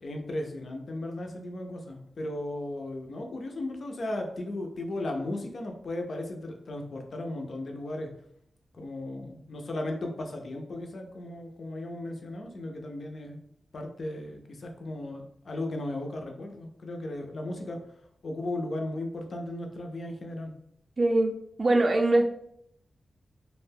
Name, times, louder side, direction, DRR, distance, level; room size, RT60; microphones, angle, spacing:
voice 1, 0.0-8.1 8.7-13.4 13.7-17.8 18.2-20.5, left 1 dB, 50° left, 3 dB, 0.4 m, -36 dB
voice 2, 21.0-22.2, right 2 dB, 40° right, 4 dB, 0.3 m, -23 dB
2.4 x 2.1 x 3.3 m, 0.71 s
wide cardioid pair, 140°, 0 cm